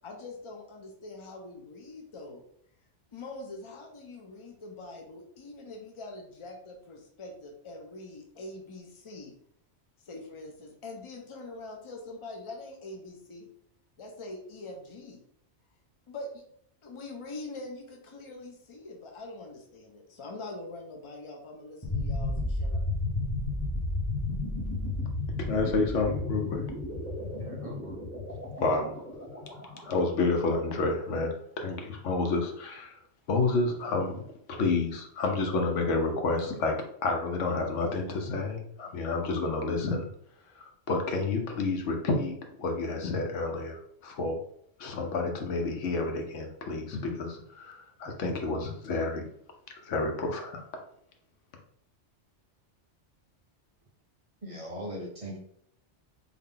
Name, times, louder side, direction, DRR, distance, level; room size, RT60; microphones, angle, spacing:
voice 1, 0.0-2.4 3.1-9.3 10.0-13.5 14.0-15.2 16.1-16.4 16.8-22.8, left 2 dB, 55° left, 1 dB, 0.3 m, -43 dB
sound 1, 21.8-30.7, left 2 dB, 15° left, 0.9 m, -33 dB
voice 2, 25.4-26.7 28.6-28.9 29.8-33.0 33.3-34.2 34.5-36.7 37.0-40.1 40.6-44.4 44.8-49.3 49.8-50.6, left 3 dB, 85° left, 3 dB, 1.0 m, -29 dB
voice 3, 27.3-28.0 54.4-55.4, equal, 35° right, -2 dB, 0.7 m, -40 dB
3.6 x 2.2 x 3.7 m, 0.68 s
omnidirectional pair, 1.2 m